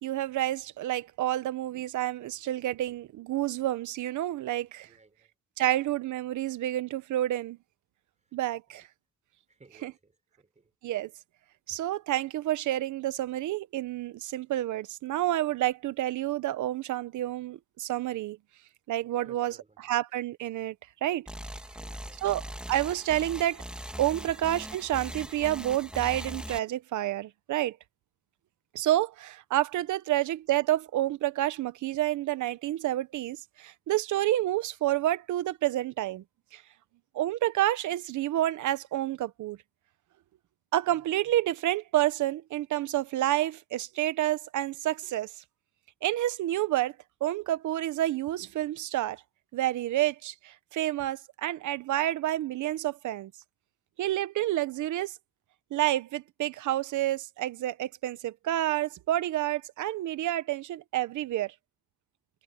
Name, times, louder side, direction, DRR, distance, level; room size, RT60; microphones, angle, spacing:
voice 1, 0.0-4.9 5.6-7.6 8.3-8.8 9.8-9.9 10.8-11.1 11.7-18.4 18.9-19.6 19.8-20.7 21.0-21.3 22.2-22.4 22.7-23.6 24.0-27.8 28.7-36.2 36.5-36.6 37.1-39.6 40.7-45.4 46.0-46.9 47.2-49.2 49.5-53.3 54.0-55.2 55.7-61.5, right 14 dB, 80° right, 1.1 m, -29 dB
voice 2, 4.8-5.3 8.2-8.4 8.7-8.9 9.5-10.7 11.7-11.9 19.2-20.0 21.7-22.6 24.3-24.4, right 3 dB, 25° right, 5.3 m, -58 dB
sound 1, 21.3-26.6, equal, 5° right, 2.0 m, -40 dB
cardioid pair, 90°, 30 cm